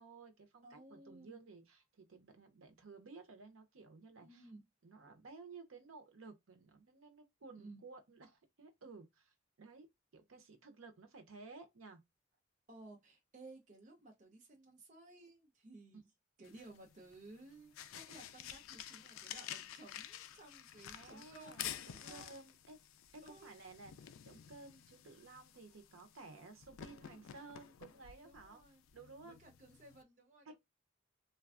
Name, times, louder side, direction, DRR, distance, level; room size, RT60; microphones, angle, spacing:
voice 1, 0.0-4.5 4.8-9.9 10.1-12.0 15.9-16.0 21.0-28.6 28.9-29.4 30.4-30.5, right 3 dB, 90° right, 0.6 m, -55 dB
voice 2, 0.6-1.4 4.2-4.6 7.6-7.8 12.7-16.1 16.4-22.3 23.2-23.6 28.2-28.8 29.2-30.5, right 2 dB, 40° right, 0.6 m, -57 dB
sound 1, 16.4-30.0, left 10 dB, 85° left, 0.3 m, -51 dB
3.2 x 2.2 x 2.4 m
head